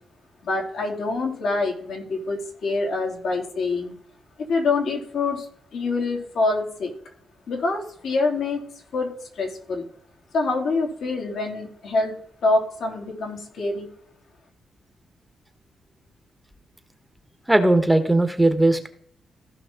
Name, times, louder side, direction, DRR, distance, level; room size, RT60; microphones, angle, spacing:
voice 1, 0.4-3.9 4.5-5.5 5.7-6.9 7.5-8.6 8.9-9.8 10.3-12.1 12.4-13.9, left 3 dB, 70° left, 0 dB, 3.3 m, -25 dB
voice 2, 17.5-18.9, right 1 dB, 10° right, 7 dB, 1.3 m, -18 dB
15.5 x 5.7 x 3.8 m, 0.62 s
cardioid pair, 75°, 0 cm